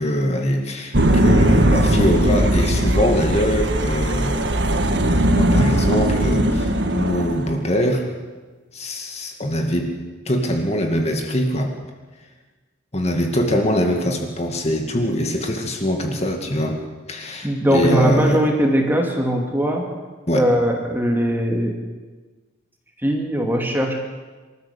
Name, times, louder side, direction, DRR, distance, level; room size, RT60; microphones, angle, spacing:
voice 1, 0.0-4.5 5.0-8.0 8.7-9.9 10.3-11.7 12.9-16.8 17.1-18.4 20.3-20.5, equal, 30° left, 3 dB, 2.2 m, -22 dB
sound 1, 0.9-7.6, right 1 dB, 60° right, 1.7 m, -19 dB
voice 2, 17.4-19.9 20.3-21.7 23.0-23.9, equal, 10° right, 1 dB, 2.6 m, -20 dB
26.0 x 13.5 x 8.4 m, 1.3 s
head